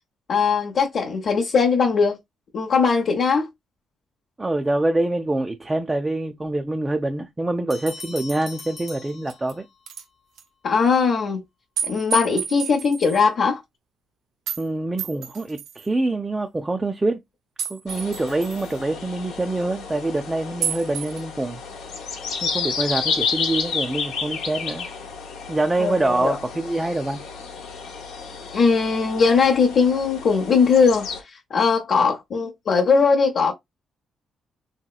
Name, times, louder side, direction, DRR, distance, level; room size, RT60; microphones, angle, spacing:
voice 1, 0.3-2.2 2.5-3.5 10.6-11.4 11.8-13.6 25.8-26.4 28.5-33.5, left 5 dB, 60° left, 0.6 m, -20 dB
voice 2, 4.4-9.7 14.6-17.2 17.7-21.6 22.4-24.9 25.5-27.2, right 2 dB, 15° right, 0.4 m, -25 dB
Bell, 7.7-9.9, left 3 dB, 35° left, 1.0 m, -40 dB
sound 1, 8.4-8.5 9.1-9.5 9.9-10.0 10.4-10.5 11.8-13.2 14.5-14.6 15.0-15.9 17.6-18.7 20.6-21.2, right 8 dB, 80° right, 0.6 m, -30 dB
sound 2, 17.9-31.2, left 5 dB, 85° left, 0.8 m, -31 dB
3.1 x 2.8 x 2.3 m
cardioid pair, 90°, 0 cm